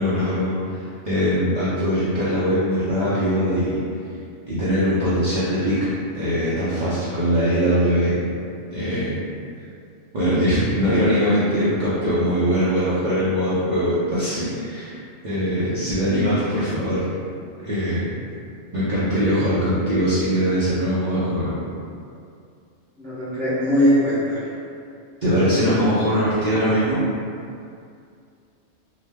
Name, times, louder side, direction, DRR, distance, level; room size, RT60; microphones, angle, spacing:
voice 1, 0.0-3.8 4.5-5.8 6.1-8.2 8.7-9.2 10.1-15.0 15.2-17.1 17.6-18.1 18.7-21.5 25.2-27.0, equal, 50° right, -11 dB, 0.5 m, -21 dB
voice 2, 23.0-24.5 25.3-25.5, equal, 5° left, -14 dB, 0.5 m, -21 dB
2.9 x 2.0 x 3.4 m, 2.4 s
omnidirectional pair, 1.3 m